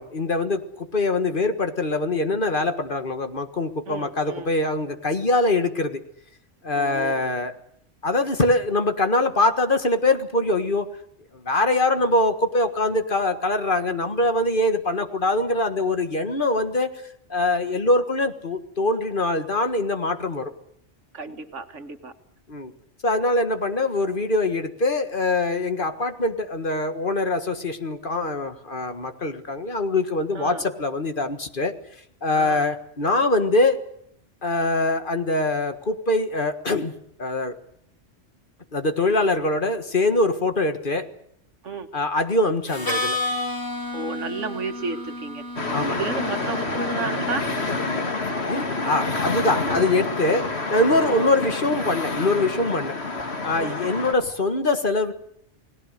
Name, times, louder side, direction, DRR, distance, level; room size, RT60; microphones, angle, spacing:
voice 1, 0.0-6.0 6.6-7.5 8.0-10.9 11.3-16.9 17.3-20.5 22.5-22.7 23.0-31.7 32.2-33.9 34.4-36.9 37.2-37.6 38.7-41.1 41.9-43.2 45.7-46.0 48.4-53.0 53.4-55.1, left 2 dB, 45° left, 8 dB, 1.8 m, -23 dB
voice 2, 3.9-4.5 6.7-7.3 21.1-22.1 30.3-30.6 32.3-32.6 41.6-41.9 43.9-45.4 45.9-47.5 51.0-51.3 53.6-53.8, right 4 dB, 85° right, 7 dB, 2.0 m, -32 dB
Harmonica, 42.7-48.4, left 2 dB, 15° left, 2.5 m, -32 dB
sound 1, 45.6-54.1, left 3 dB, 60° left, 2.4 m, -28 dB
30.0 x 19.0 x 6.7 m, 0.73 s
omnidirectional pair, 1.2 m